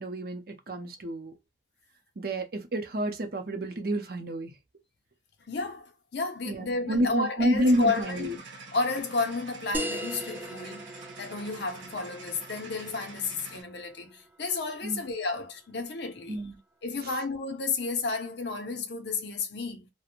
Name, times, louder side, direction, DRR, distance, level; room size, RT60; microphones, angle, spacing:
voice 1, 0.0-1.3 2.2-4.5 6.5-8.3 14.8-15.0 16.3-16.5, right 1 dB, 50° right, 0.6 m, -29 dB
voice 2, 5.4-8.4 8.7-10.9 11.2-16.4 16.8-19.9, left 3 dB, 60° left, 0.6 m, -32 dB
sound 1, 7.6-13.6, right 3 dB, 80° right, 0.8 m, -46 dB
sound 2, 9.7-14.8, equal, 10° right, 0.3 m, -39 dB
2.5 x 2.1 x 2.8 m
head